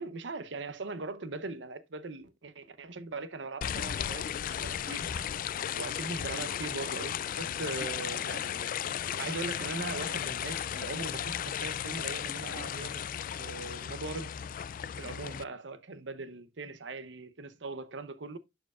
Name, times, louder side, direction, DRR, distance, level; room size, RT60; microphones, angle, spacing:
voice 1, 0.0-13.0 13.4-14.4 15.0-18.4, right 3 dB, 80° right, 0.8 m, -40 dB
sound 1, 3.6-15.4, left 9 dB, 50° left, 0.3 m, -35 dB
11.5 x 4.6 x 2.4 m
head